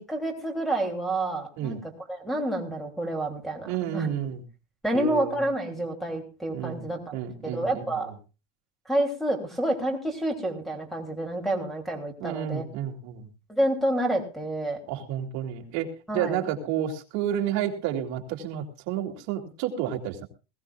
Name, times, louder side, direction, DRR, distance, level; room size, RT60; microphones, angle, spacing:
voice 1, 0.0-1.8 2.1-4.1 4.8-7.2 7.4-8.1 8.9-12.6 13.5-14.8 16.1-16.4, right 1 dB, ahead, 5 dB, 3.2 m, -28 dB
voice 2, 3.7-4.4 4.9-5.4 6.5-8.1 12.2-13.3 14.9-20.3, right 10 dB, 55° right, 2 dB, 3.0 m, -31 dB
21.0 x 16.0 x 2.5 m, 0.32 s
cardioid pair, 165°, 33 cm